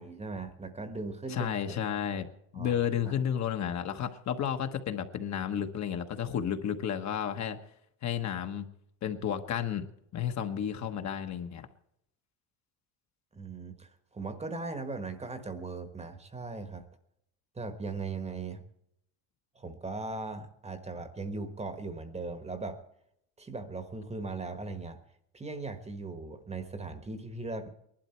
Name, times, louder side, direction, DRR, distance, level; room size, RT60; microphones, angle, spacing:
voice 1, 0.0-1.8 2.5-2.7 3.0-3.2 13.3-16.8 17.5-18.6 19.5-22.8 23.4-25.0 25.3-27.7, right 3 dB, 15° right, 9 dB, 1.3 m, -38 dB
voice 2, 1.3-2.3 2.5-7.6 8.0-8.7 9.0-9.9 10.1-11.7, left 9 dB, 40° left, 6 dB, 1.3 m, -32 dB
19.5 x 12.0 x 4.5 m, 0.74 s
cardioid pair, 140°, 41 cm